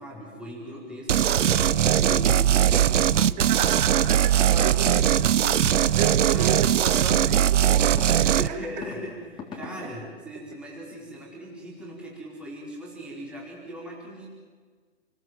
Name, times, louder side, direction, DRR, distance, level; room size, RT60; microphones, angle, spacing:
voice 1, 0.0-3.4 4.3-4.5 6.3-6.5 8.3-14.3, equal, 5° right, 4.8 m, -38 dB
sound 1, 1.1-8.5, right 10 dB, 75° right, 0.9 m, -20 dB
voice 2, 3.4-8.6 9.6-10.1, right 10 dB, 35° right, 2.4 m, -33 dB
sound 2, 5.7-5.9 6.9-7.2 8.0-8.1 8.8-9.0 9.4-9.7, left 5 dB, 15° left, 3.5 m, -37 dB
29.5 x 21.5 x 7.8 m
hypercardioid pair, 155°, 37 cm